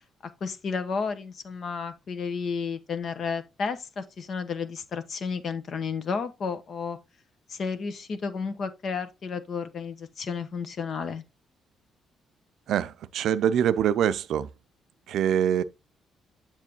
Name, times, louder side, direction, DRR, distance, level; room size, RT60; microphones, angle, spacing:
voice 1, 0.4-7.0 7.5-11.2, left 5 dB, 55° left, 1.0 m, -32 dB
voice 2, 12.7-14.5 15.1-15.6, right 9 dB, 75° right, 0.5 m, -24 dB
7.5 x 7.3 x 2.9 m
cardioid pair, 105°, 0 cm